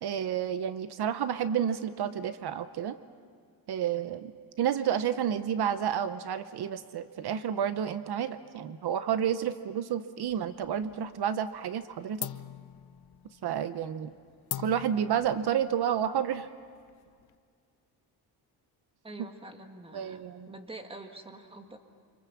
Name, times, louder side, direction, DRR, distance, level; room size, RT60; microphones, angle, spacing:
voice 1, 0.0-2.9 3.7-4.3 4.6-12.3 13.4-14.1 14.6-16.5 19.9-20.5, right 9 dB, 70° right, 12 dB, 0.8 m, -30 dB
sound 1, 10.2-11.1 11.4-11.8 12.2-17.4, left 12 dB, 65° left, 0.7 m, -43 dB
voice 2, 19.0-21.8, right 2 dB, 15° right, 5 dB, 1.7 m, -46 dB
29.5 x 26.0 x 7.3 m, 2.1 s
wide cardioid pair, 175°, 40 cm